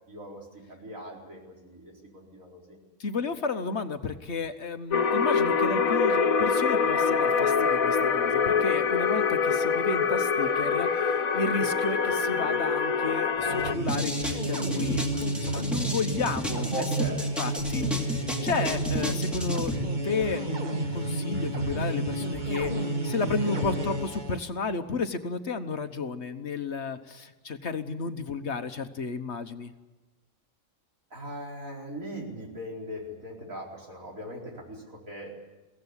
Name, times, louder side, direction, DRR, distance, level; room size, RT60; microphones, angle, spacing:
voice 1, 0.1-2.8 16.7-17.3 31.1-35.3, right 1 dB, 75° right, -1 dB, 5.0 m, -39 dB
voice 2, 3.0-15.1 15.4-16.8 17.4-19.7 20.0-29.7, left 4 dB, 55° left, 8 dB, 1.4 m, -32 dB
sound 1, 4.9-13.7, left 5 dB, 85° left, 1.5 m, -25 dB
sound 2, 13.4-24.4, right 1 dB, 35° right, 1.7 m, -31 dB
sound 3, 13.9-19.8, left 1 dB, ahead, 2.6 m, -33 dB
23.0 x 16.5 x 9.8 m, 1.1 s
omnidirectional pair, 1.4 m